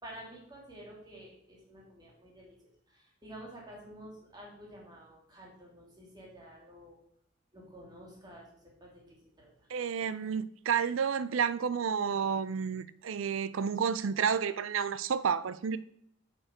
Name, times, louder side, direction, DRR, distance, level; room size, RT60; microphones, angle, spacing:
voice 1, 0.0-2.6 2.9-7.0 7.5-8.5 8.8-9.7, right 1 dB, 20° right, 2.7 m, -50 dB
voice 2, 9.7-15.8, right 6 dB, 90° right, 0.5 m, -30 dB
8.8 x 6.8 x 5.0 m
head